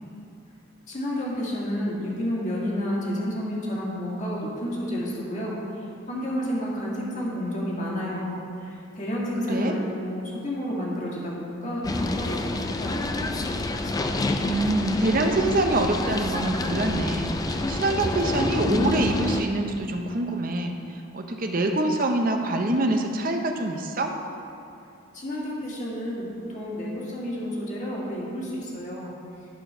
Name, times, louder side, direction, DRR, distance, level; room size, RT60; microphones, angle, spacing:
voice 1, 0.9-5.6 6.1-13.0 25.1-29.2, equal, 35° left, -5 dB, 1.8 m, -30 dB
sound 1, 11.8-19.4, left 2 dB, 15° left, 0.3 m, -27 dB
voice 2, 14.4-20.7 21.1-24.1, right 2 dB, 40° right, 3 dB, 0.7 m, -25 dB
11.5 x 4.5 x 5.6 m, 2.5 s
head